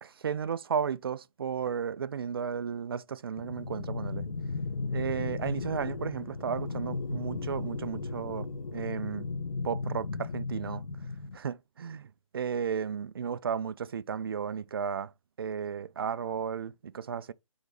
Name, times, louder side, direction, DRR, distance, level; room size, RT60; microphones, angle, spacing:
voice 1, 0.0-4.2 4.9-9.3 9.6-10.8 11.3-15.1 15.4-17.3, right 7 dB, 40° right, 0.4 m, -34 dB
sound 1, 3.4-11.4, left 4 dB, 65° left, 0.9 m, -35 dB
9.0 x 4.0 x 3.3 m
figure-of-eight pair, 135°, 18 cm